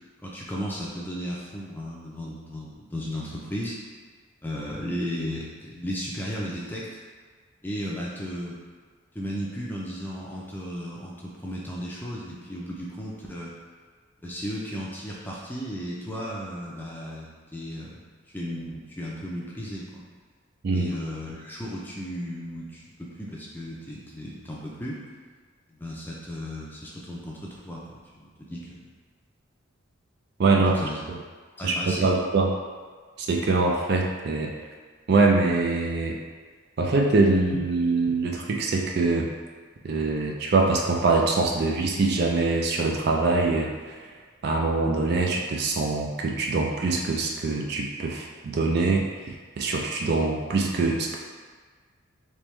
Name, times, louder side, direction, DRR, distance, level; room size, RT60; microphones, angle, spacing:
voice 1, 0.2-3.8 4.4-6.9 7.6-8.6 9.1-13.5 14.2-18.0 18.3-20.0 20.7-25.0 25.7-28.8 30.6-31.0 31.6-32.1, equal, 10° left, -5 dB, 0.5 m, -35 dB
voice 2, 30.4-30.7 31.1-31.2 31.6-32.5 33.2-34.6 35.1-36.2 36.8-39.3 39.8-44.1 44.4-51.2, right 3 dB, 50° right, 0 dB, 0.3 m, -24 dB
3.5 x 3.0 x 3.1 m, 1.5 s
head